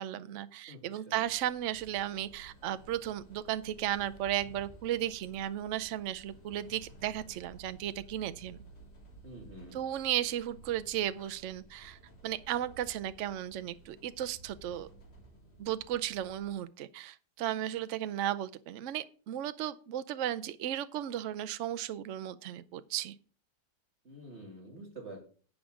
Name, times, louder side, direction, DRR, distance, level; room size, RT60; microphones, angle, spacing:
voice 1, 0.0-8.6 9.7-14.9 15.6-23.2, right 12 dB, 65° right, 13 dB, 0.7 m, -35 dB
voice 2, 0.7-1.2 9.2-9.8 24.0-25.2, right 1 dB, 40° right, -1 dB, 2.6 m, -48 dB
sound 1, 1.2-16.5, right 2 dB, 65° left, 3.2 m, -55 dB
11.5 x 8.5 x 3.7 m, 0.41 s
omnidirectional pair, 1.9 m